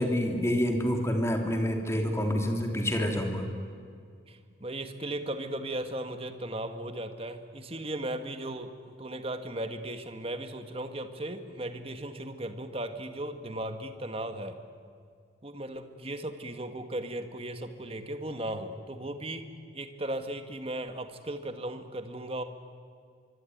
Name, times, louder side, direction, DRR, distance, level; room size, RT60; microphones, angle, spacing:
voice 1, 0.0-3.5, equal, 15° left, 3 dB, 3.1 m, -27 dB
voice 2, 4.3-8.7 9.0-14.6 15.4-19.5 19.7-22.4, right 1 dB, 30° right, 7 dB, 1.8 m, -36 dB
24.5 x 24.0 x 9.4 m, 2.2 s
head